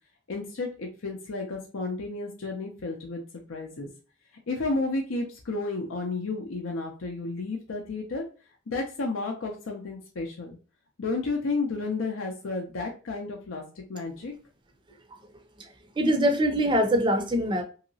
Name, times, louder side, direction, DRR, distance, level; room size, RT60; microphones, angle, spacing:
voice 1, 0.3-3.2 3.5-3.9 4.5-8.2 8.7-10.6 11.0-13.6 13.9-14.3, left 3 dB, 75° left, 1 dB, 0.6 m, -32 dB
voice 2, 16.0-17.6, equal, 25° right, 5 dB, 0.4 m, -23 dB
2.9 x 2.8 x 2.6 m, 0.36 s
head